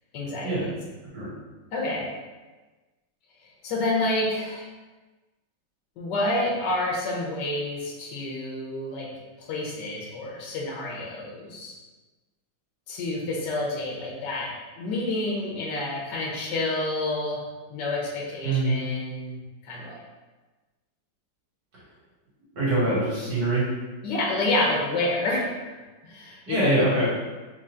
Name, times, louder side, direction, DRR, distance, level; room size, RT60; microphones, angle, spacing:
voice 1, 0.1-0.7 1.7-2.1 3.6-4.6 6.0-9.1 9.4-11.7 12.9-17.4 17.7-19.4 19.6-20.0 24.0-25.8 26.0-26.7, left 2 dB, 65° left, -3 dB, 1.6 m, -28 dB
voice 2, 18.4-18.7 22.5-23.6 26.5-27.1, right 2 dB, 60° right, -9 dB, 2.2 m, -23 dB
4.2 x 3.0 x 3.8 m, 1.2 s
omnidirectional pair, 2.1 m